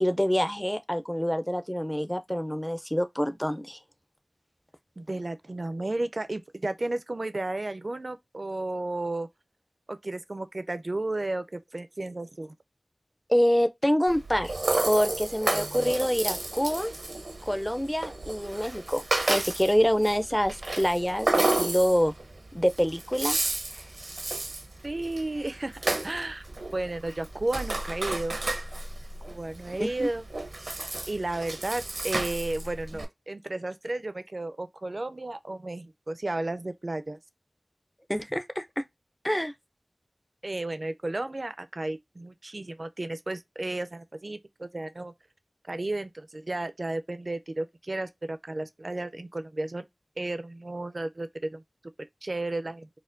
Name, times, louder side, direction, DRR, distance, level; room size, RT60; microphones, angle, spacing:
voice 1, 0.0-3.8 13.3-14.5 14.9-16.9 17.4-19.0 19.3-22.1 22.5-23.4 29.8-30.1 38.1-38.8 39.2-39.5, equal, 10° left, 0.4 m, -26 dB
voice 2, 5.0-9.3 9.9-12.6 24.8-26.4 26.7-28.4 29.3-30.2 31.1-37.2 40.4-45.1 45.7-49.9 50.2-51.6 52.2-52.9, right 2 dB, 55° right, 0.4 m, -33 dB
Rattle (instrument), 14.1-33.0, right 2 dB, 85° right, 0.7 m, -32 dB
4.3 x 2.2 x 2.5 m
wide cardioid pair, 60°, 0 cm